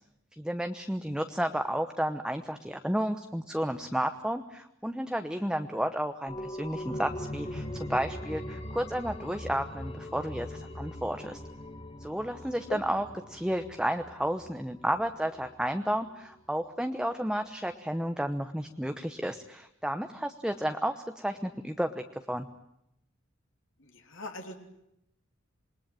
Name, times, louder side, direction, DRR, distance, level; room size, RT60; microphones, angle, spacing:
voice 1, 0.4-11.4 12.0-22.5, equal, 5° right, 7 dB, 1.0 m, -32 dB
sound 1, 6.3-15.6 16.0-16.1, left 1 dB, 30° left, 1.8 m, -41 dB
voice 2, 23.8-24.6, left 2 dB, 70° left, 3 dB, 3.4 m, -40 dB
27.5 x 21.5 x 9.0 m, 0.82 s
head